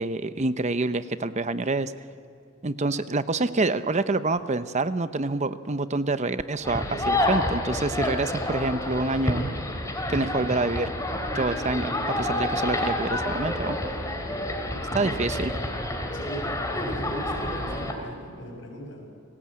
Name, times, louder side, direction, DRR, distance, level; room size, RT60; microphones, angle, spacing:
voice 1, 0.0-1.9 2.6-9.5 10.1-10.9 11.3-13.8 14.9-15.7, right 3 dB, 35° right, 12 dB, 0.7 m, -27 dB
sound 1, 6.6-17.9, left 1 dB, 15° left, 3.2 m, -29 dB
voice 2, 14.5-15.2 16.1-19.1, equal, 70° left, 1 dB, 7.7 m, -40 dB
29.5 x 19.5 x 8.7 m, 2.6 s
head